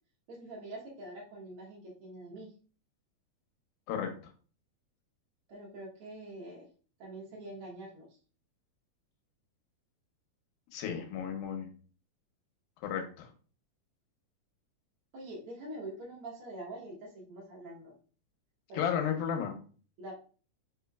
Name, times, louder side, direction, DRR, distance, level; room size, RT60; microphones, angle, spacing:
voice 1, 0.3-2.6 5.5-6.7 7.0-8.2 15.1-17.9 18.7-19.1 20.0-20.1, right 1 dB, 75° right, -4 dB, 1.3 m, -45 dB
voice 2, 10.7-11.7 12.8-13.3 18.7-19.6, left 8 dB, 85° left, 4 dB, 2.6 m, -33 dB
5.4 x 3.0 x 2.3 m, 0.40 s
omnidirectional pair, 4.1 m